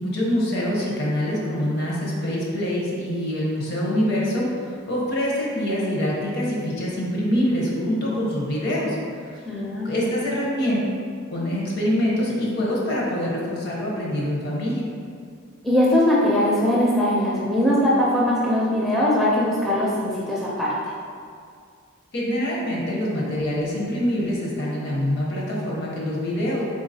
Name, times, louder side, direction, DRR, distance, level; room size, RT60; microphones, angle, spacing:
voice 1, 0.0-9.0 9.2-9.4 9.8-10.8 11.3-14.9 22.1-26.6, equal, 50° left, -4 dB, 0.8 m, -25 dB
voice 2, 9.4-9.9 15.6-20.7, left 1 dB, ahead, -7 dB, 0.4 m, -21 dB
3.7 x 3.6 x 2.7 m, 2.2 s
head